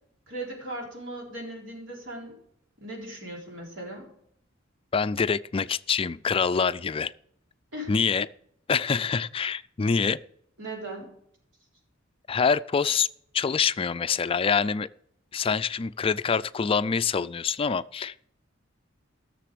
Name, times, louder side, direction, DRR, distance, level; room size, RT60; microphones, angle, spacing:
voice 1, 0.3-2.4 2.8-4.1 7.7-8.0 10.6-11.1, right 1 dB, 70° right, -2 dB, 4.0 m, -38 dB
voice 2, 4.9-7.1 7.9-8.3 8.7-10.2 12.3-13.1 13.3-14.9 15.3-18.3, left 6 dB, 30° left, 15 dB, 0.4 m, -25 dB
16.5 x 6.9 x 5.0 m, 0.70 s
head